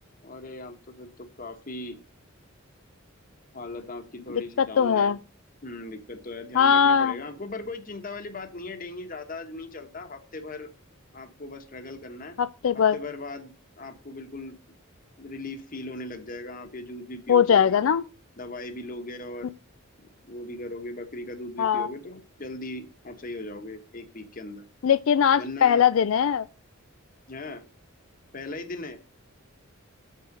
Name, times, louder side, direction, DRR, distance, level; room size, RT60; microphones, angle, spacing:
voice 1, 0.2-2.0 3.5-5.2 5.6-10.7 11.1-12.4 12.7-14.6 15.2-17.8 18.4-19.5 20.3-24.7 25.4-25.8 27.3-27.6 28.3-29.0, left 2 dB, 45° left, 1.2 m, -38 dB
voice 2, 4.6-5.2 6.5-7.2 12.4-13.0 17.3-18.0 21.6-21.9 24.8-26.5, left 7 dB, 75° left, 0.4 m, -20 dB
7.2 x 5.6 x 5.1 m
head